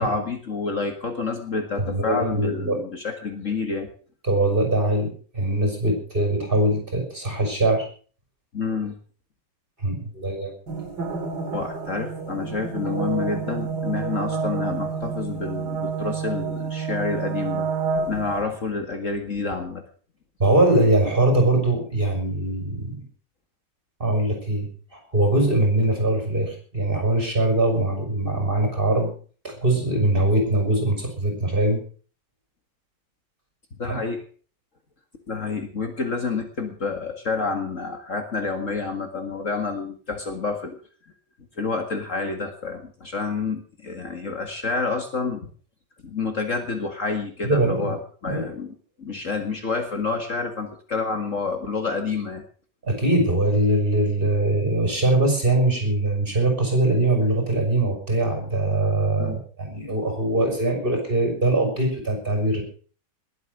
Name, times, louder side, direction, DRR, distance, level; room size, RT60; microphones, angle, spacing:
voice 1, 0.0-3.9 8.5-9.0 11.5-17.7 18.1-19.8 33.8-34.2 35.3-40.8 41.6-45.5 46.0-52.4 59.2-59.4, left 4 dB, 45° left, 5 dB, 2.1 m, -28 dB
voice 2, 1.8-2.8 4.2-7.9 9.8-10.5 20.4-23.0 24.0-29.1 29.4-31.8 33.9-34.0 47.4-48.0 48.3-48.5 52.8-62.6, right 2 dB, 30° right, 3 dB, 5.9 m, -22 dB
sound 1, 10.7-18.4, right 5 dB, 70° right, 2.6 m, -29 dB
20.5 x 8.4 x 6.6 m, 0.42 s
omnidirectional pair, 1.9 m